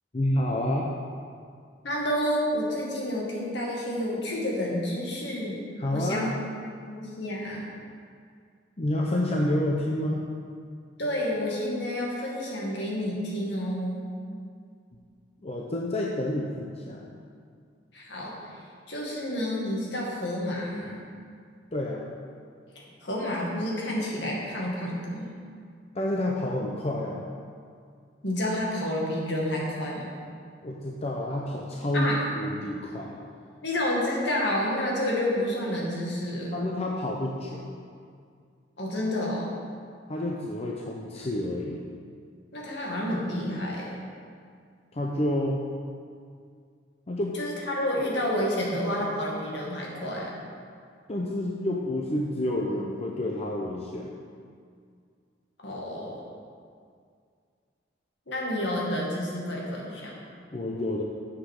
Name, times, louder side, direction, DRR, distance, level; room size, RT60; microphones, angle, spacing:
voice 1, 0.1-0.9 5.8-6.3 8.8-10.3 15.4-17.2 21.7-22.1 25.9-27.2 30.6-33.1 36.5-37.6 40.1-41.8 44.9-45.6 47.1-47.4 51.1-54.1 60.5-61.0, left 1 dB, 35° left, -2 dB, 0.7 m, -29 dB
voice 2, 1.8-5.6 5.9-6.3 6.8-7.7 11.0-14.0 17.9-18.5 18.9-21.0 22.8-25.3 28.2-30.1 31.9-32.2 33.6-36.6 38.8-39.5 42.5-44.0 47.3-50.3 55.6-56.2 58.3-60.1, left 1 dB, 65° left, -3 dB, 2.1 m, -29 dB
7.4 x 6.4 x 6.5 m, 2.2 s
head